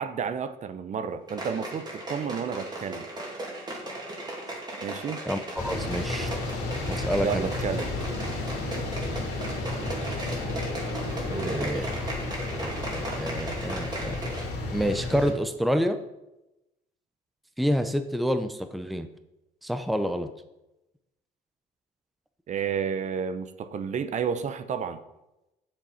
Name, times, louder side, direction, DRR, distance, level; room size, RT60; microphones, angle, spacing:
voice 1, 0.0-3.1 4.8-5.2 7.2-7.9 11.3-11.9 22.5-25.0, right 7 dB, 45° right, 10 dB, 0.8 m, -31 dB
sound 1, 1.3-14.6 14.9-15.0, right 1 dB, 25° right, 2.8 m, -37 dB
voice 2, 5.3-6.4 6.9-7.5 11.2-11.8 12.6-14.2 14.7-16.0 17.6-19.1 19.6-20.3, equal, ahead, 9 dB, 0.7 m, -28 dB
sound 2, 5.6-15.3, left 2 dB, 90° left, 2.8 m, -32 dB
7.8 x 7.3 x 5.6 m, 0.92 s
cardioid pair, 110°, 17 cm